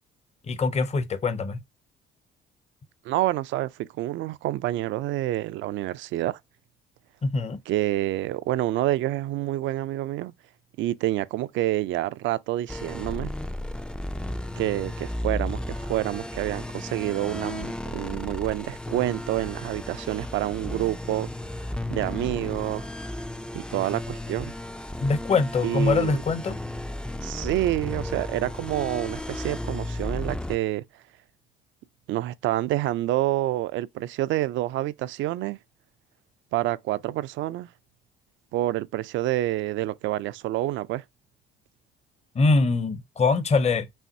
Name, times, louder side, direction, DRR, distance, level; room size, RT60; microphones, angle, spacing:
voice 1, 0.5-1.6 7.2-7.6 25.0-26.6 42.4-43.9, left 4 dB, 35° left, 0.8 m, -23 dB
voice 2, 3.0-6.4 7.7-10.3 10.8-13.3 14.6-21.3 21.9-22.9 23.2-23.3 23.5-24.5 25.6-26.2 27.2-30.8 32.1-35.6 36.5-37.7 38.5-41.0, right 15 dB, 70° right, 0.4 m, -28 dB
sound 1, 12.7-30.6, left 1 dB, 5° left, 0.3 m, -34 dB
5.6 x 2.5 x 2.7 m
cardioid pair, 85°, 20 cm